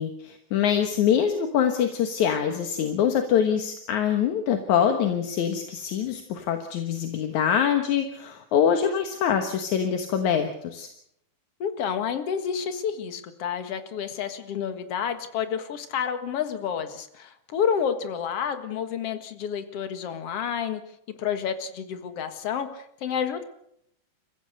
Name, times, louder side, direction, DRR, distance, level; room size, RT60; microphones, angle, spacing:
voice 1, 0.0-10.9, left 8 dB, 75° left, 6 dB, 2.8 m, -24 dB
voice 2, 11.6-20.8 21.2-23.4, left 7 dB, 55° left, 9 dB, 2.5 m, -29 dB
30.0 x 15.5 x 6.6 m, 0.74 s
omnidirectional pair, 3.4 m